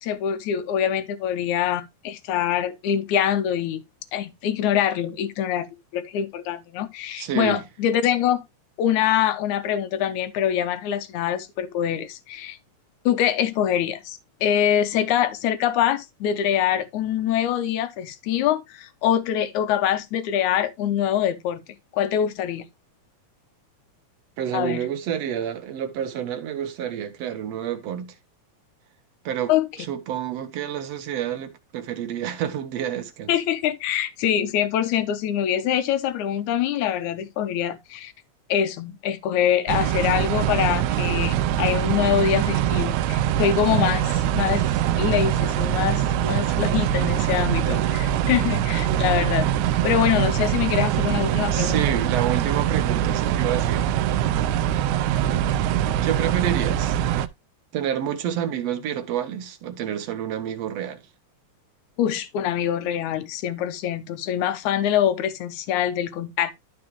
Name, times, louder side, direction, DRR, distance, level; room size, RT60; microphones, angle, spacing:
voice 1, 0.0-3.8 4.1-5.7 5.9-8.4 8.8-12.6 13.1-21.6 21.9-22.7 24.5-24.9 29.5-29.7 33.3-38.1 38.5-44.6 45.0-49.5 49.8-51.9 62.0-66.5, left 10 dB, 75° left, 2.3 m, -24 dB
voice 2, 7.2-7.6 24.4-28.1 29.3-29.5 29.9-33.3 46.5-46.7 47.7-47.9 51.5-53.9 56.0-57.2 57.7-61.0, right 9 dB, 65° right, 2.2 m, -29 dB
sound 1, 39.7-57.3, right 11 dB, 80° right, 1.9 m, -23 dB
12.5 x 4.9 x 3.1 m
omnidirectional pair, 3.5 m